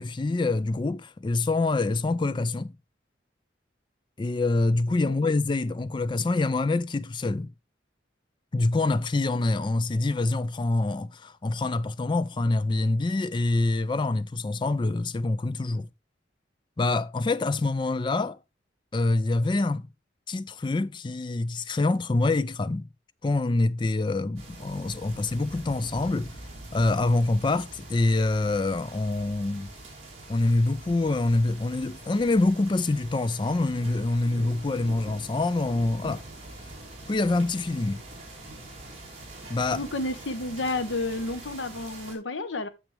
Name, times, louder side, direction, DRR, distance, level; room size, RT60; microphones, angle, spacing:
voice 1, 0.0-2.7 4.2-7.5 8.5-15.9 16.8-18.4 18.9-19.9 20.3-22.9 23.2-26.3 26.7-29.7 30.3-36.2 37.1-38.0 39.5-39.8, left 2 dB, 25° left, 0.3 m, -25 dB
sound 1, 24.4-42.2, right 2 dB, 35° right, 2.8 m, -44 dB
voice 2, 39.7-42.7, left 2 dB, 80° left, 1.0 m, -31 dB
9.0 x 6.4 x 3.2 m
head